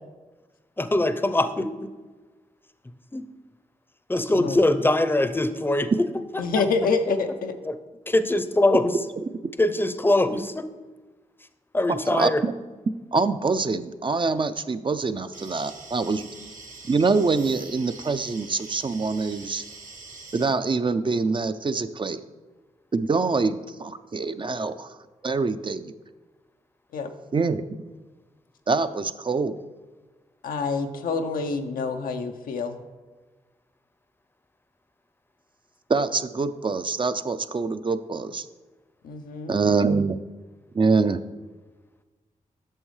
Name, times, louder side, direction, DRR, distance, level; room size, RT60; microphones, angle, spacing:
voice 1, 0.8-1.9 3.1-3.2 4.1-6.1 6.5-6.6 8.1-9.0 9.6-10.6 11.7-12.4, left 1 dB, 15° left, 11 dB, 0.6 m, -22 dB
voice 2, 6.4-7.5 26.9-27.1 30.4-32.8 39.0-39.5, left 4 dB, 85° left, 6 dB, 0.6 m, -27 dB
voice 3, 11.9-12.5 13.1-16.3 16.9-19.6 20.3-22.2 22.9-24.9 25.2-25.9 27.3-27.6 28.7-29.6 35.9-38.5 39.5-40.2 40.7-41.2, right 4 dB, 35° right, 11 dB, 0.4 m, -25 dB
sound 1, 15.3-20.5, right 3 dB, 65° right, 1.3 m, -44 dB
8.9 x 6.2 x 3.2 m, 1.3 s
cardioid pair, 50°, 14 cm